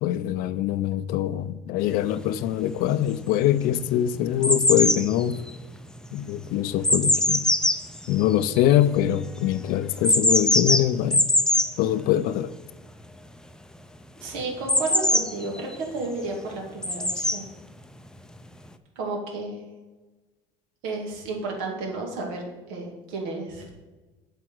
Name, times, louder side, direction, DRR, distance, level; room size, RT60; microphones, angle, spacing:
voice 1, 0.0-5.4 6.1-7.5 8.1-11.3 11.8-12.5, left 12 dB, 70° left, 0.5 m, -23 dB
sound 1, 2.1-2.2 2.8-3.4 3.7-9.0 10.0-11.7 14.7-15.7 16.8-17.4 18.4-18.5, left 1 dB, 5° left, 0.5 m, -22 dB
voice 2, 14.2-17.5 19.0-19.7 20.8-23.7, right 3 dB, 80° right, 2.2 m, -32 dB
7.9 x 4.6 x 6.2 m
supercardioid pair, 95°, 16 cm